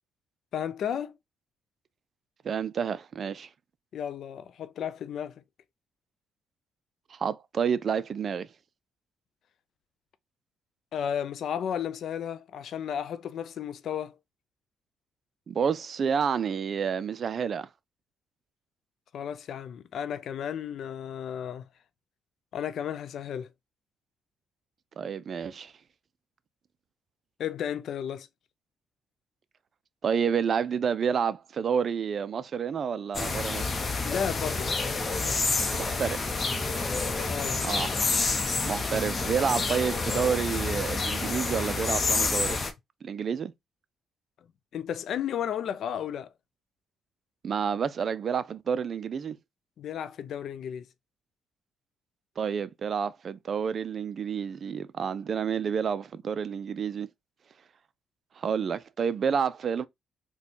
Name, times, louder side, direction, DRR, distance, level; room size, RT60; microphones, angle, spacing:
voice 1, 0.5-1.2 3.9-5.4 10.9-14.2 19.1-21.6 22.5-23.5 27.4-28.3 34.0-34.7 37.3-37.6 44.7-46.3 49.8-50.9, left 9 dB, 65° left, 0.3 m, -33 dB
voice 2, 2.4-3.5 7.1-8.5 15.5-17.7 25.0-25.7 30.0-33.7 35.8-36.2 37.6-38.0 38.6-42.6 43.0-43.5 47.4-49.4 52.4-57.1 58.4-59.9, right 7 dB, 50° right, 0.3 m, -29 dB
sound 1, 33.1-42.7, left 3 dB, 35° left, 0.7 m, -28 dB
4.2 x 2.2 x 2.8 m
cardioid pair, 90°, 0 cm